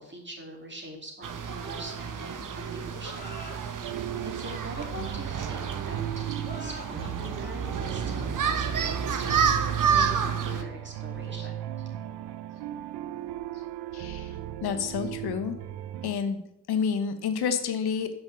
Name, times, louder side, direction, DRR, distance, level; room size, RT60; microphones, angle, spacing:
voice 1, 0.0-3.9 4.2-11.6, right 1 dB, 30° right, 0 dB, 2.7 m, -42 dB
sound 1, 1.2-10.6, right 6 dB, 50° right, 0.9 m, -30 dB
sound 2, 3.0-12.3, left 1 dB, 25° left, 1.8 m, -48 dB
sound 3, 3.8-16.1, right 12 dB, 85° right, 0.5 m, -36 dB
voice 2, 13.9-14.3 14.6-15.5 16.0-16.4 16.7-18.1, left 6 dB, 75° left, 8 dB, 1.0 m, -29 dB
6.1 x 5.3 x 6.6 m, 0.83 s
supercardioid pair, 45°, 39 cm